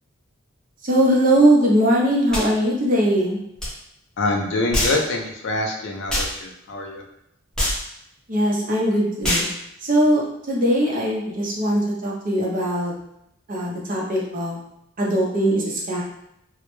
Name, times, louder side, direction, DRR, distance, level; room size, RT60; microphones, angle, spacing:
voice 1, 0.8-3.4 8.3-9.4 9.8-10.2 10.5-12.9 13.5-14.6 15.0-16.0, right 1 dB, 45° right, -4 dB, 0.6 m, -20 dB
sound 1, 2.3-2.5 3.6-3.7 4.7-5.0 6.1-6.3 7.6-7.8 9.2-9.5, left 1 dB, 5° left, 0.6 m, -23 dB
voice 2, 4.2-7.0, left 2 dB, 60° left, 2 dB, 0.4 m, -25 dB
2.1 x 2.0 x 3.0 m, 0.79 s
head